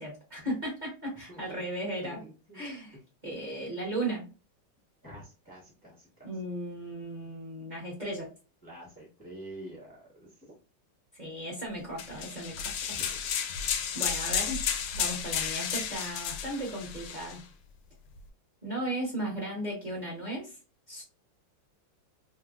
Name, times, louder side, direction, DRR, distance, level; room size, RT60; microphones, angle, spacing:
voice 1, 0.0-2.2 2.5-3.0 3.2-4.3 6.2-8.3 11.1-12.7 13.9-14.6 14.9-17.4 18.6-20.6 20.9-21.0, right 1 dB, 30° right, -3 dB, 0.8 m, -36 dB
voice 2, 2.0-2.6 2.9-3.0 5.0-6.4 8.6-10.5 12.9-13.2, equal, 20° left, -6 dB, 0.6 m, -47 dB
sound 1, 12.0-17.4, left 7 dB, 90° left, 1.4 m, -32 dB
3.1 x 2.7 x 2.4 m, 0.34 s
omnidirectional pair, 2.2 m